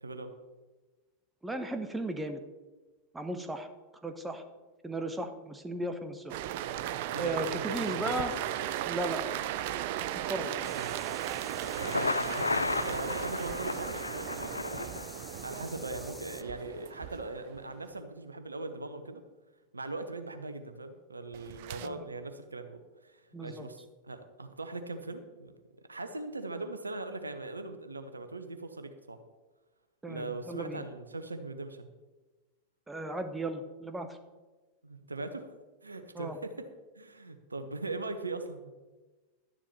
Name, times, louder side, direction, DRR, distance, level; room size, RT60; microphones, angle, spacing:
voice 1, 0.0-0.3 7.1-8.3 10.6-10.9 11.7-14.9 15.4-19.2 19.7-25.5 25.9-29.2 30.1-31.9 34.8-35.5 35.8-36.7 37.0-38.7, right 2 dB, 80° right, 8 dB, 1.0 m, -40 dB
voice 2, 1.4-2.4 3.1-3.7 4.0-4.4 4.8-6.3 7.2-8.3 8.8-9.2 10.2-10.8 21.8-22.0 23.3-23.7 30.0-30.8 32.9-34.2 36.1-36.4, right 1 dB, 10° right, 7 dB, 1.1 m, -36 dB
sound 1, 6.3-17.8 21.3-21.9, right 12 dB, 50° right, 0.5 m, -36 dB
sound 2, 10.6-16.4, left 2 dB, 5° left, 0.6 m, -49 dB
Thunder, 11.6-15.6, left 3 dB, 80° left, 0.4 m, -34 dB
12.0 x 10.0 x 4.2 m, 1.2 s
figure-of-eight pair, 90°, 0 cm